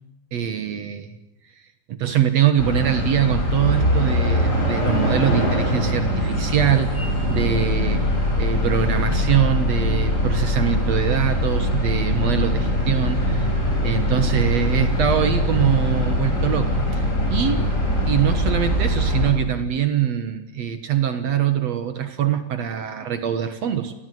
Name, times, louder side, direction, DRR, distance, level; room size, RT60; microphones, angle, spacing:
voice 1, 0.3-1.1 1.9-7.0 7.3-13.5 13.8-17.7 18.1-23.9, right 9 dB, 90° right, 9 dB, 1.4 m, -23 dB
sound 1, 2.6-19.3, left 1 dB, 15° left, 6.9 m, -22 dB
29.5 x 21.0 x 9.4 m, 0.92 s
omnidirectional pair, 5.4 m